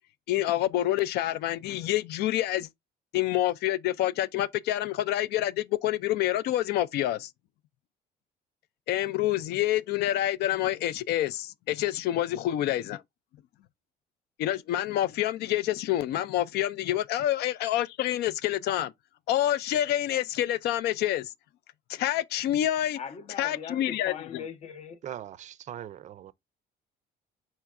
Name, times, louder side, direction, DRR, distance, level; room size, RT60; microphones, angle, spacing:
voice 1, 0.3-2.7 3.1-7.3 8.9-13.0 14.4-18.9 19.3-21.3 21.9-23.0 23.4-24.1, left 13 dB, 75° left, 0.4 m, -27 dB
voice 2, 23.0-25.0, left 7 dB, 40° left, 0.7 m, -40 dB
voice 3, 25.0-26.3, right 11 dB, 45° right, 0.4 m, -40 dB
4.5 x 4.3 x 2.3 m
cardioid pair, 110°, 17 cm